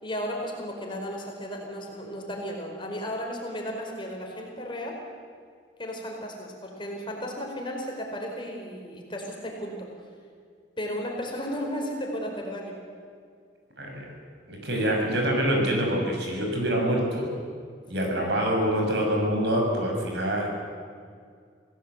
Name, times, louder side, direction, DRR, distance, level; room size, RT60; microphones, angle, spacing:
voice 1, 0.0-5.0 5.8-9.9 10.8-12.8, equal, 25° left, 1 dB, 4.6 m, -34 dB
voice 2, 13.8-14.1 14.5-17.3 17.9-20.5, equal, 65° right, 0 dB, 6.5 m, -25 dB
27.5 x 17.5 x 8.2 m, 2.1 s
head